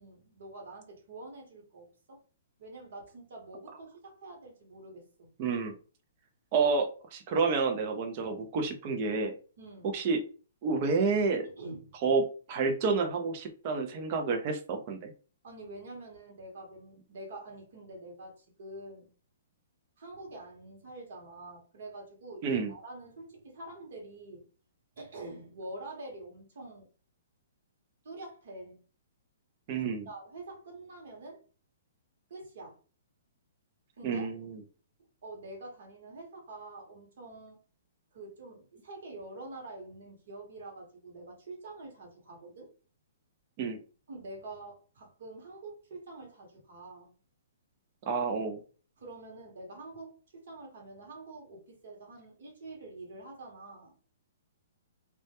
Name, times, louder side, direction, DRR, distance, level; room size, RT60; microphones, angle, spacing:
voice 1, 0.0-2.2 2.6-5.3 9.6-10.0 11.4-11.9 15.4-19.1 20.0-24.4 25.0-26.9 28.0-28.8 30.0-31.4 32.3-32.8 34.0-34.3 35.2-37.6 38.1-42.7 44.1-47.1 49.0-53.9, right 2 dB, 50° right, 0.9 m, -46 dB
voice 2, 5.4-5.7 6.5-9.3 9.8-10.2 10.6-11.5 12.0-15.1 22.4-22.7 29.7-30.1 34.0-34.6 43.6-43.8 48.1-48.6, right 4 dB, 30° right, 0.4 m, -29 dB
2.1 x 2.1 x 2.8 m
hypercardioid pair, 175°, 0 cm